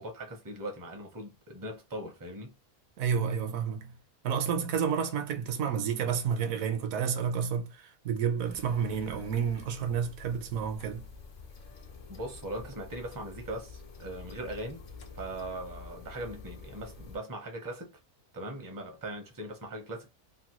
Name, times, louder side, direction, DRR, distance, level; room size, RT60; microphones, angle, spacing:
voice 1, 0.0-2.5 12.1-14.8 15.1-17.9 18.3-20.1, right 1 dB, 25° right, 0.5 m, -40 dB
voice 2, 3.0-4.0 4.2-11.1, right 7 dB, 70° right, 1.1 m, -30 dB
sound 1, 8.4-17.2, left 4 dB, 60° left, 0.5 m, -48 dB
3.0 x 2.3 x 2.9 m
omnidirectional pair, 1.6 m